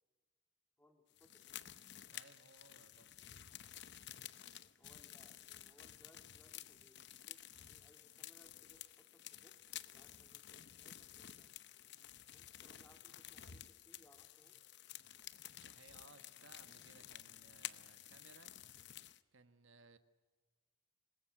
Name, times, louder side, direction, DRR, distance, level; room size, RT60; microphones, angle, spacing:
voice 1, 0.8-1.7 4.8-11.5 12.3-14.6, equal, 10° left, 4 dB, 2.6 m, -69 dB
sound 1, 1.2-19.2, left 12 dB, 55° left, 0.8 m, -53 dB
voice 2, 2.1-3.1 15.6-18.5 19.3-20.0, right 4 dB, 70° right, 9 dB, 1.4 m, -63 dB
26.0 x 20.5 x 9.0 m, 1.4 s
head